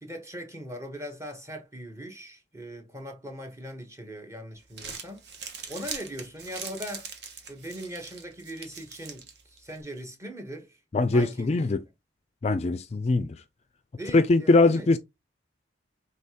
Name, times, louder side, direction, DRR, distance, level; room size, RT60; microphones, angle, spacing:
voice 1, 0.0-7.1 7.5-10.8 11.1-11.6 13.9-14.9, equal, 15° right, 1.1 m, -40 dB
Crumpling crinkling, 4.5-9.8, right 5 dB, 65° right, 1.2 m, -42 dB
voice 2, 10.9-11.8 12.4-13.3 14.1-15.0, left 3 dB, 35° left, 0.4 m, -21 dB
5.5 x 3.3 x 2.8 m
head